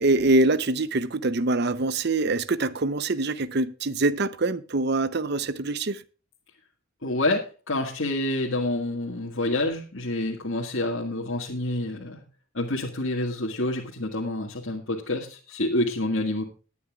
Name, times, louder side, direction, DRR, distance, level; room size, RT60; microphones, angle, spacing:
voice 1, 0.0-6.0, right 2 dB, 55° right, 0.7 m, -24 dB
voice 2, 7.0-12.2 12.5-16.4, left 1 dB, 70° left, 1.9 m, -28 dB
20.0 x 9.5 x 2.4 m
head